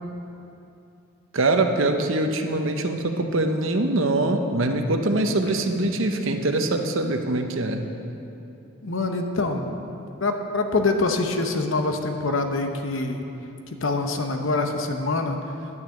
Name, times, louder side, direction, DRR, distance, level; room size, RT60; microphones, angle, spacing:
voice 1, 1.3-7.9, right 2 dB, 60° right, 5 dB, 0.8 m, -23 dB
voice 2, 8.8-9.7 10.2-13.2 13.7-15.4, left 3 dB, 60° left, 5 dB, 0.9 m, -25 dB
10.5 x 6.4 x 8.4 m, 2.8 s
head